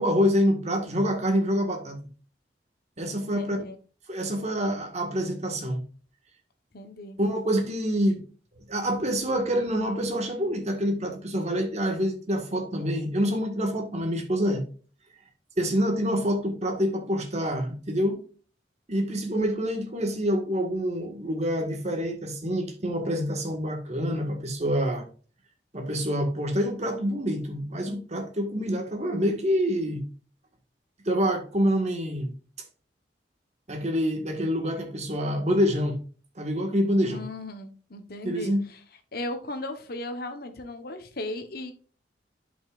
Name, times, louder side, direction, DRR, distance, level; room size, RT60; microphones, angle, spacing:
voice 1, 0.0-2.0 3.0-3.6 4.1-5.8 7.2-8.2 8.7-14.6 15.6-18.2 18.9-25.0 25.7-30.0 31.0-32.3 33.7-36.0 36.4-37.2 38.2-38.6, equal, 40° right, 1.7 m, -26 dB
voice 2, 3.1-3.8 6.7-7.2 37.0-38.8 39.1-41.7, left 2 dB, 60° left, 1.1 m, -37 dB
11.0 x 5.5 x 2.5 m
head